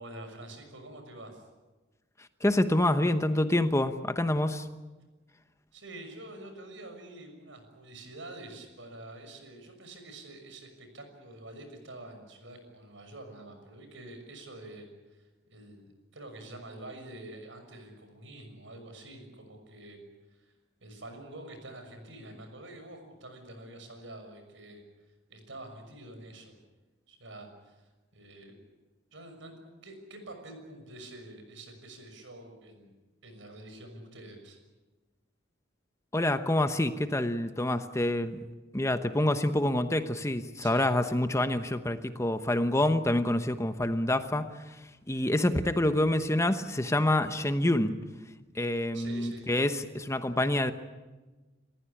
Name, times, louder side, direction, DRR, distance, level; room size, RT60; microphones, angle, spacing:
voice 1, 0.0-1.5 5.7-20.0 20.3-20.5 20.8-24.8 25.3-26.6 27.1-28.5 29.1-29.6 29.8-32.9 33.2-34.6 40.6-41.0 48.9-49.5, right 1 dB, 75° right, 6 dB, 6.3 m, -47 dB
voice 2, 2.4-4.7 36.1-38.4 38.7-44.8 45.1-47.9 48.5-50.7, left 1 dB, 15° left, 9 dB, 1.0 m, -27 dB
29.0 x 15.0 x 10.0 m, 1.2 s
head